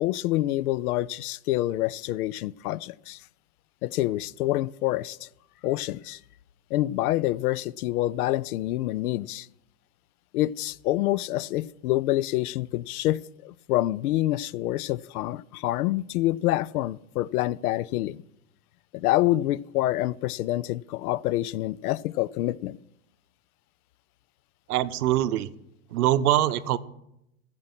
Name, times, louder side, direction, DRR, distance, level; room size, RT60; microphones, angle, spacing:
voice 1, 0.0-3.2 3.8-5.3 5.6-6.2 6.7-9.5 10.3-18.2 18.9-22.8, left 16 dB, 80° left, 0.5 m, -27 dB
voice 2, 24.7-25.5 25.9-26.8, right 13 dB, 85° right, 0.8 m, -23 dB
15.0 x 6.0 x 6.0 m
supercardioid pair, 135°, 44 cm